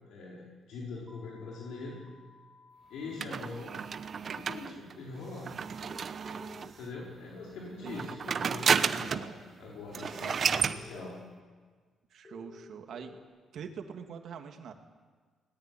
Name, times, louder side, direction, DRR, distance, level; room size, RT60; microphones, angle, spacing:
voice 1, 0.1-2.0 2.9-3.7 4.2-5.5 6.8-9.3 9.6-11.1, left 3 dB, 85° left, -4 dB, 4.9 m, -43 dB
sound 1, 1.1-3.1, left 3 dB, 30° right, 2.4 m, -59 dB
sound 2, 3.2-6.9 7.8-9.4 9.6-9.7 9.9-10.8, right 6 dB, 50° right, 1.0 m, -31 dB
sound 3, 5.8-6.7 7.8-8.9 10.0-11.2 12.2-13.2, left 4 dB, 40° left, 4.0 m, -51 dB
voice 2, 12.1-13.2 13.5-14.7, right 7 dB, 65° right, 5 dB, 2.3 m, -44 dB
21.0 x 19.0 x 8.7 m, 1.5 s
cardioid pair, 90°, 0 cm